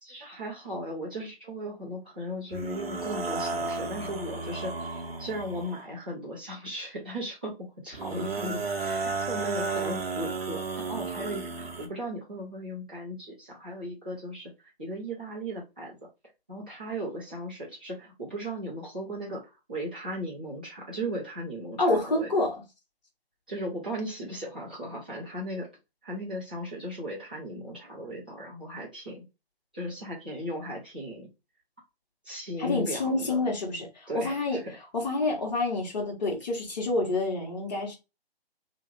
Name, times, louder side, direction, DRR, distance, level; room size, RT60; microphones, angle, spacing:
voice 1, 0.0-14.5 14.8-16.0 16.5-22.3 23.5-25.7 26.0-29.2 29.7-31.3 32.2-33.5 34.1-34.8, equal, 10° right, 0.4 m, -37 dB
sound 1, 2.5-5.9 7.9-11.9, right 4 dB, 70° right, 0.8 m, -33 dB
voice 2, 21.8-22.6 32.6-34.6 34.9-38.0, left 2 dB, 45° left, 1.3 m, -28 dB
2.8 x 2.1 x 3.1 m
figure-of-eight pair, 145°, 31 cm